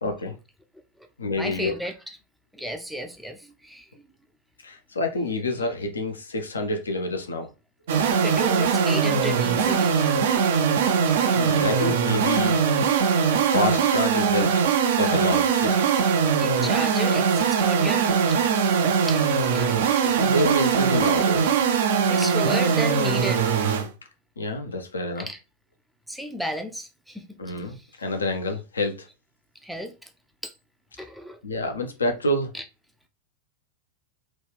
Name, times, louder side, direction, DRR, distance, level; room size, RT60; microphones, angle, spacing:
voice 1, 0.0-0.4 1.2-1.8 4.6-7.5 11.3-12.6 13.5-14.7 14.9-15.9 19.7-19.8 20.1-21.5 24.4-25.3 27.4-29.1 31.4-32.5, left 2 dB, 75° left, 0.5 m, -28 dB
voice 2, 1.3-2.2 2.5-3.9 8.0-9.9 16.2-18.4 19.1-19.2 19.5-20.3 22.0-23.5 25.2-25.4 26.1-27.4 27.7-27.9 29.6-30.1 30.4-30.5 31.0-31.4 32.5-32.6, equal, ahead, 0.4 m, -33 dB
sound 1, 7.9-23.9, right 6 dB, 55° right, 0.5 m, -21 dB
3.0 x 2.3 x 3.4 m
figure-of-eight pair, 90°, 0 cm